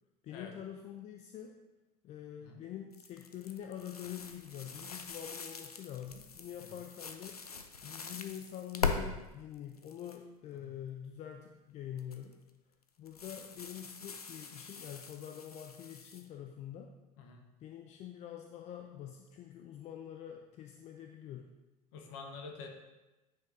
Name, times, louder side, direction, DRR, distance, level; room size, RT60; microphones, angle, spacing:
voice 1, 0.2-1.6 2.0-7.4 7.8-12.4 13.0-16.9 17.6-21.5, left 10 dB, 35° left, 4 dB, 0.5 m, -45 dB
sound 1, 2.9-9.0 9.5-10.2 12.0-12.3 13.1-16.2, left 5 dB, 85° left, 0.5 m, -41 dB
voice 2, 21.9-22.7, left 4 dB, 55° left, 2 dB, 1.2 m, -47 dB
9.2 x 5.1 x 2.7 m, 1.0 s
figure-of-eight pair, 70°, 19 cm